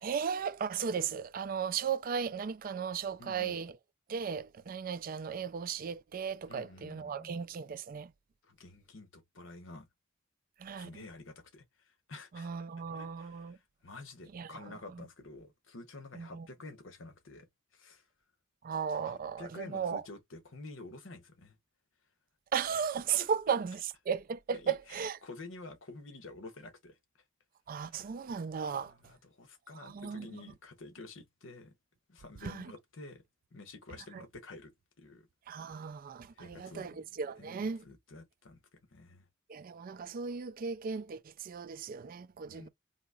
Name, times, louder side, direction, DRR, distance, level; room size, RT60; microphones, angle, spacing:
voice 1, 0.0-3.8 4.1-8.1 10.6-10.9 12.3-13.6 14.3-15.0 16.1-16.5 18.6-20.0 22.5-25.2 27.7-28.9 29.8-30.4 32.4-32.7 34.1-34.2 35.5-37.8 39.5-42.7, right 6 dB, 45° right, 0.4 m, -36 dB
voice 2, 3.2-3.6 6.5-7.3 8.4-9.9 10.8-12.5 12.7-17.5 17.7-18.0 19.0-21.6 23.2-23.3 24.6-27.0 27.9-28.1 28.7-31.7 32.1-33.2 33.5-34.7 35.0-35.3 36.3-39.3 42.4-42.7, left 2 dB, 75° left, 0.9 m, -50 dB
3.9 x 2.7 x 2.3 m
head